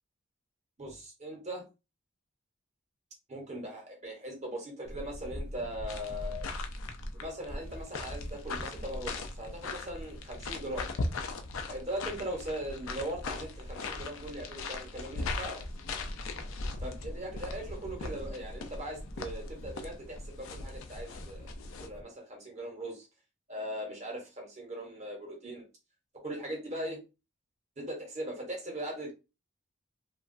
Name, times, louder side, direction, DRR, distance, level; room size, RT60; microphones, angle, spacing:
voice 1, 0.8-1.7 3.3-6.5 7.1-10.9 11.7-15.6 16.8-21.5 21.8-23.1 23.5-25.7 26.1-27.0 27.8-29.1, right 1 dB, 35° right, 0 dB, 0.9 m, -40 dB
sound 1, 4.8-22.0, equal, 45° left, 0.6 m, -44 dB
sound 2, 5.9-21.9, left 3 dB, 90° left, 0.4 m, -40 dB
2.9 x 2.2 x 2.5 m, 0.29 s
head